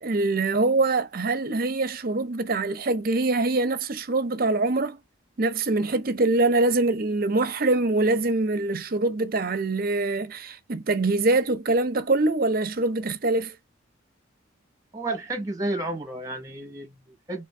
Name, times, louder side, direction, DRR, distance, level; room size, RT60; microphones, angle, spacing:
voice 1, 0.0-5.0 5.4-13.5, right 2 dB, 45° right, 0.7 m, -24 dB
voice 2, 14.9-17.5, right 2 dB, 15° right, 1.1 m, -31 dB
3.4 x 3.3 x 3.2 m
head